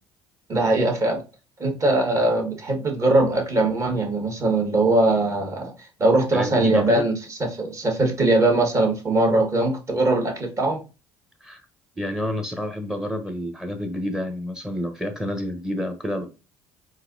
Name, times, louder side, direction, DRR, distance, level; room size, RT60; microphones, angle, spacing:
voice 1, 0.5-1.2 1.6-5.7 6.0-10.8, right 2 dB, 35° right, 1.7 m, -21 dB
voice 2, 6.3-7.1 11.4-11.6 12.0-16.3, equal, 5° right, 0.9 m, -29 dB
4.0 x 2.7 x 3.9 m
cardioid pair, 100°, 9 cm